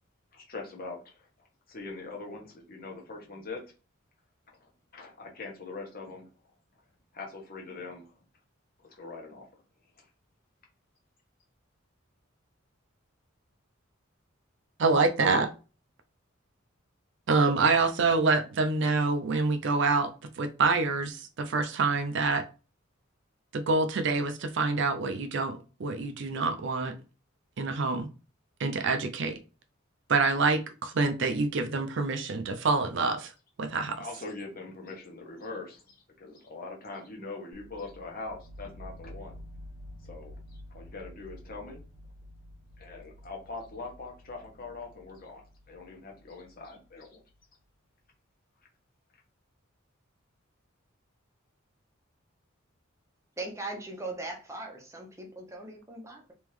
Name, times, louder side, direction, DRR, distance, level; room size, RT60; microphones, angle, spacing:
voice 1, 0.3-3.6 4.9-6.3 7.1-8.1 8.8-9.5 10.0-10.1 33.9-39.4 40.0-40.3 40.7-41.8 42.8-47.2, left 3 dB, 45° left, 1.1 m, -42 dB
voice 2, 14.8-15.5 17.3-20.1 20.4-22.4 23.5-26.9 27.6-28.1 28.6-29.4 30.1-33.3 33.6-34.0, right 3 dB, 60° right, 0.5 m, -26 dB
sound 1, 37.5-47.3, left 1 dB, 75° left, 1.5 m, -49 dB
voice 3, 53.4-56.3, right 2 dB, 15° right, 0.8 m, -39 dB
3.5 x 3.0 x 3.1 m
head